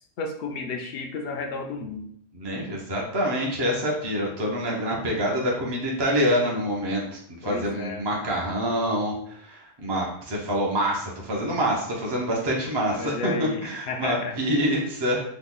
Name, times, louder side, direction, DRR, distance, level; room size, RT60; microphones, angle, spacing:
voice 1, 0.2-2.1 7.4-8.1 13.0-14.3, left 3 dB, 65° left, 3 dB, 0.7 m, -32 dB
voice 2, 2.3-15.2, equal, 30° right, -2 dB, 0.6 m, -26 dB
3.0 x 2.3 x 3.7 m, 0.65 s
omnidirectional pair, 1.1 m